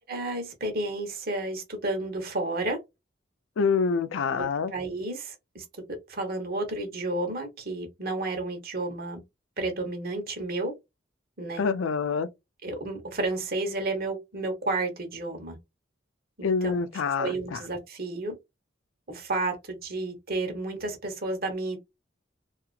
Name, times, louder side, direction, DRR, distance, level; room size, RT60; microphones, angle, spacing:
voice 1, 0.1-2.8 4.4-9.2 9.6-10.7 11.4-11.6 12.6-15.6 16.6-16.8 17.2-18.3 19.1-21.8, right 2 dB, 55° right, 1.0 m, -31 dB
voice 2, 3.6-4.7 11.6-12.3 16.4-17.6, left 5 dB, 85° left, 0.4 m, -26 dB
2.8 x 2.4 x 2.4 m
head